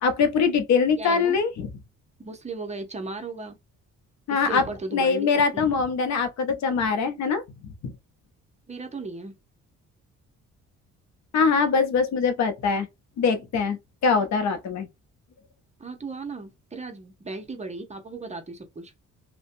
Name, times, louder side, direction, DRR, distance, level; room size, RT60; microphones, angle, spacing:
voice 1, 0.0-1.7 4.3-4.6 4.9-7.4 7.8-7.9 11.3-12.9 13.2-14.9, left 5 dB, 65° left, 0.7 m, -23 dB
voice 2, 1.0-1.4 2.2-3.6 4.3-5.7 8.7-9.3 15.8-18.9, right 3 dB, 25° right, 0.7 m, -36 dB
2.5 x 2.2 x 2.5 m
cardioid pair, 90°, 30 cm